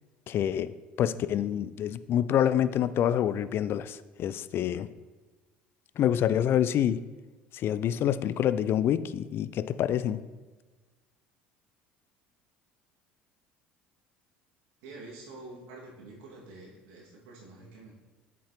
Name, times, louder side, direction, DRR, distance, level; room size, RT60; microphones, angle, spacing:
voice 1, 0.3-0.7 1.0-4.9 6.0-7.0 7.5-10.2, left 10 dB, 45° left, 15 dB, 0.3 m, -27 dB
voice 2, 14.8-17.9, right 2 dB, 65° right, -4 dB, 2.1 m, -47 dB
8.3 x 5.9 x 3.0 m, 1.3 s
hypercardioid pair, 65°, 5 cm